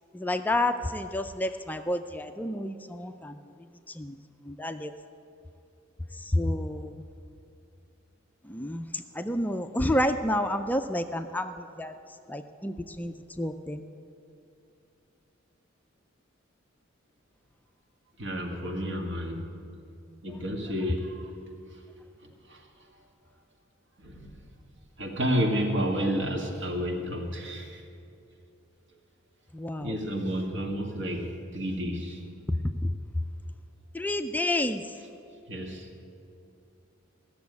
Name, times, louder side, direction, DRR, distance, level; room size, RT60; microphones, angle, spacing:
voice 1, 0.1-3.4 3.9-4.2 4.4-4.9 6.1-7.0 8.4-11.9 12.3-13.8 29.5-30.0 32.5-32.6 32.8-32.9 33.9-34.9, left 1 dB, 10° left, 7 dB, 0.4 m, -30 dB
voice 2, 18.2-19.4 20.2-21.3 22.5-22.6 24.0-24.4 25.0-27.8 29.8-32.2 35.5-35.9, equal, 65° right, 1 dB, 1.9 m, -30 dB
15.5 x 7.0 x 9.4 m, 2.7 s
head